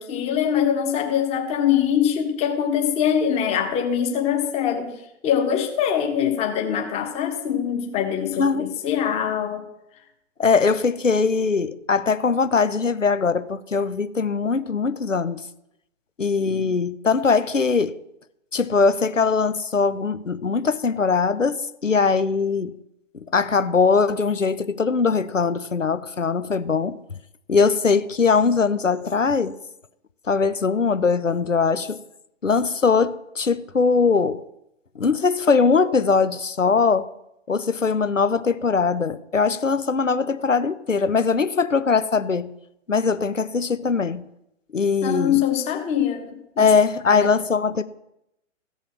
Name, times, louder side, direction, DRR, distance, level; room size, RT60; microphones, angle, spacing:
voice 1, 0.0-5.0 5.2-9.6 16.4-16.7 45.0-46.7 47.1-47.3, left 9 dB, 15° left, 1.3 m, -23 dB
voice 2, 8.4-8.7 10.4-15.4 16.2-17.9 18.5-22.7 23.3-27.0 27.5-29.6 30.3-32.0 32.4-34.4 35.0-37.1 37.5-42.5 42.9-44.2 44.7-45.4 46.6-47.8, left 5 dB, 90° left, 0.7 m, -21 dB
15.0 x 5.6 x 6.0 m
figure-of-eight pair, 120°, 37 cm